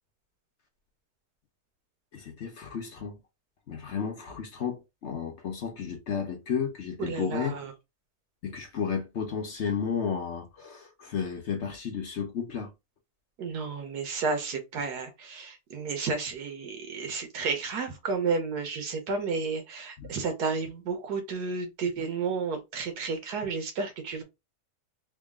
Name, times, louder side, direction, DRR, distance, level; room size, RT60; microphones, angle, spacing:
voice 1, 2.1-3.2 3.7-7.6 8.4-12.7 20.0-20.1, left 7 dB, 55° left, 0.9 m, -33 dB
voice 2, 7.0-7.7 13.4-24.2, right 4 dB, 85° right, 1.5 m, -32 dB
3.6 x 2.3 x 3.5 m
omnidirectional pair, 1.7 m